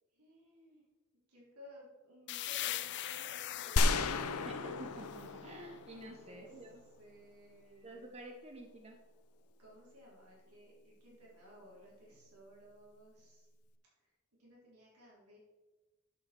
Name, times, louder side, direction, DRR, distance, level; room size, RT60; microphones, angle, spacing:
voice 1, 0.1-0.8 1.3-4.3 6.2-6.6 7.0-8.2 9.6-13.5 14.4-15.4, left 1 dB, 90° right, -5 dB, 3.7 m, -57 dB
sound 1, 2.3-5.9, left 13 dB, 55° left, 0.5 m, -42 dB
sound 2, 3.8-6.7, left 3 dB, 90° left, 0.7 m, -33 dB
voice 2, 4.4-6.8 7.8-9.0, right 1 dB, 30° right, 2 dB, 0.9 m, -49 dB
10.5 x 7.2 x 4.4 m, 1.2 s
head